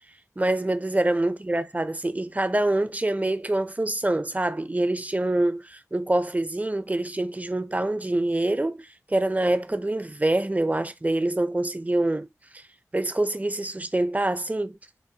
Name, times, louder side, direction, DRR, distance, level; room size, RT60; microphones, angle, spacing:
voice 1, 0.4-12.3 12.9-14.8, right 1 dB, 25° right, 0.4 m, -25 dB
4.4 x 2.1 x 2.7 m
wide cardioid pair, 40°, 6 cm